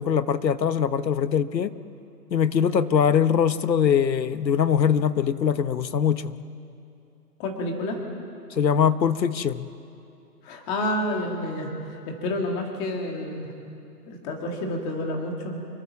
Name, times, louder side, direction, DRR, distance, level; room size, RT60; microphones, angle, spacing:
voice 1, 0.0-1.7 2.3-6.4 8.5-9.7, left 7 dB, 85° left, 13 dB, 1.2 m, -22 dB
voice 2, 7.4-8.0 10.4-13.5 14.1-15.6, left 1 dB, 10° left, 2 dB, 1.8 m, -29 dB
26.0 x 22.0 x 7.3 m, 2.8 s
hypercardioid pair, 165°, 49 cm